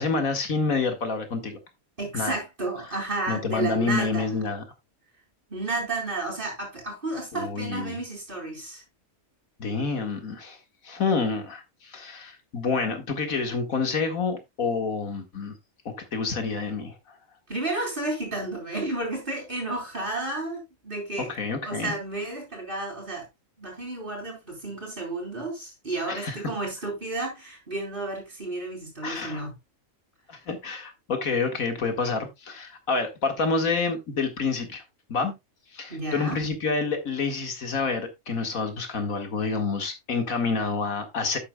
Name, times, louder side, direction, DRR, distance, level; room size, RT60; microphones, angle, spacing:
voice 1, 0.0-1.6 2.1-2.4 3.3-4.6 7.3-8.0 9.6-10.6 10.8-15.5 15.9-17.2 21.2-21.9 26.1-26.4 29.0-29.4 30.3-34.8 35.1-35.3 35.7-41.4, left 4 dB, 85° left, 2.3 m, -28 dB
voice 2, 2.0-4.4 5.5-8.8 17.5-21.3 21.6-23.3 23.6-29.5 35.9-36.4, right 2 dB, 40° right, 4.5 m, -32 dB
11.5 x 8.5 x 2.3 m
omnidirectional pair, 1.4 m